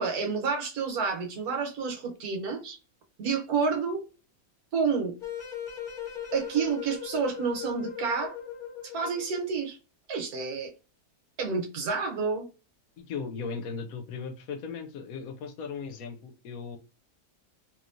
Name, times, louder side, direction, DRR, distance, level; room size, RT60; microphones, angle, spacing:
voice 1, 0.0-2.8 3.2-4.0 4.7-5.1 6.3-8.4 8.9-9.8 10.1-10.7 11.4-12.5, right 5 dB, 80° right, 1.3 m, -29 dB
sound 1, 5.2-9.5, left 9 dB, 40° left, 0.8 m, -39 dB
voice 2, 13.0-16.8, left 5 dB, 75° left, 1.0 m, -37 dB
3.0 x 2.7 x 2.5 m
omnidirectional pair, 1.6 m